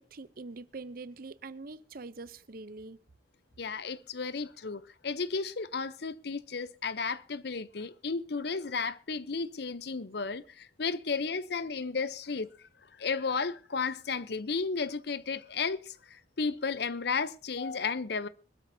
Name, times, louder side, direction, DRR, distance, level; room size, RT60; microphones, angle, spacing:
voice 1, 0.0-3.0, right 3 dB, 50° right, 0.7 m, -44 dB
voice 2, 3.6-12.7 13.0-18.3, left 4 dB, 60° left, 0.7 m, -33 dB
24.0 x 12.5 x 2.7 m
head